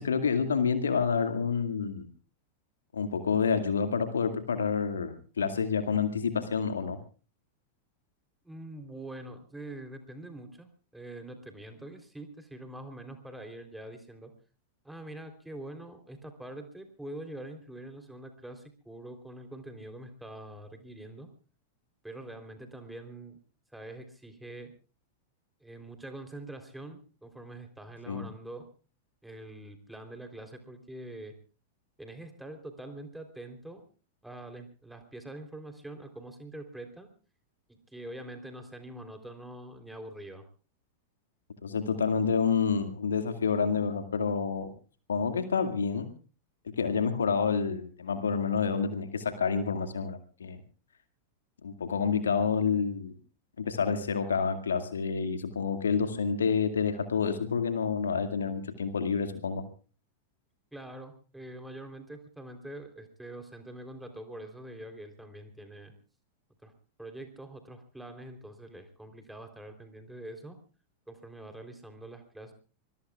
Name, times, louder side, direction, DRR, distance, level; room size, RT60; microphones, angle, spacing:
voice 1, 0.0-2.1 2.9-7.0 28.1-28.3 41.6-44.7 45.1-46.1 46.6-50.6 51.6-53.1 53.6-59.6, left 6 dB, 70° left, 9 dB, 2.1 m, -28 dB
voice 2, 8.4-14.3 14.8-21.3 22.0-23.4 23.7-24.7 25.6-28.7 29.2-31.4 32.0-33.8 34.2-37.1 37.7-40.4 60.7-65.9 66.6-66.7 67.0-70.6 71.1-72.5, right 1 dB, 5° right, 6 dB, 3.5 m, -44 dB
25.5 x 21.5 x 2.4 m, 0.37 s
figure-of-eight pair, 90°, 0 cm